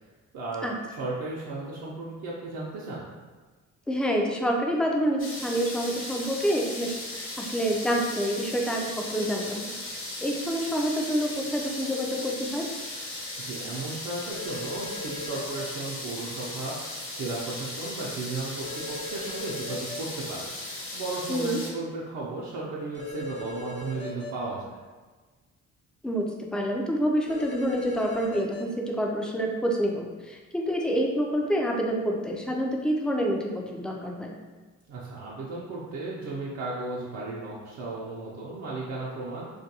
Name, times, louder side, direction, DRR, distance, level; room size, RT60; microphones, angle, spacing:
voice 1, 0.3-3.2 13.4-24.8 34.9-39.5, right 3 dB, 70° right, -6 dB, 0.6 m, -35 dB
voice 2, 3.9-9.8 10.2-12.7 21.3-21.6 26.0-34.4, equal, 5° left, -1 dB, 0.3 m, -27 dB
sound 1, 5.2-21.7, left 2 dB, 45° left, 0.7 m, -37 dB
sound 2, 14.3-15.7 18.6-20.0 22.9-24.3 27.3-28.6, left 2 dB, 80° left, 0.8 m, -38 dB
2.4 x 2.2 x 2.7 m, 1.3 s
cardioid pair, 90°, 30 cm